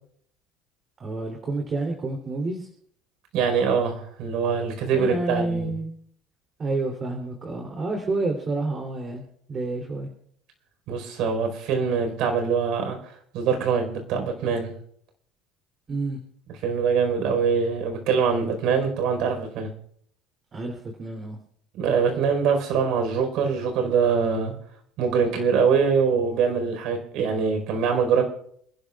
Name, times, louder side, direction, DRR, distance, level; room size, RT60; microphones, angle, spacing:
voice 1, 1.0-2.7 4.9-5.9 6.6-9.2 9.5-10.1 15.9-16.2 20.5-21.4, right 2 dB, 35° right, 1 dB, 3.3 m, -29 dB
voice 2, 3.3-5.7 10.9-13.0 13.3-14.8 16.6-19.7 21.7-24.5 25.0-28.2, right 6 dB, 65° right, 4 dB, 4.6 m, -23 dB
30.0 x 11.5 x 2.5 m, 0.66 s
supercardioid pair, 105°, 0 cm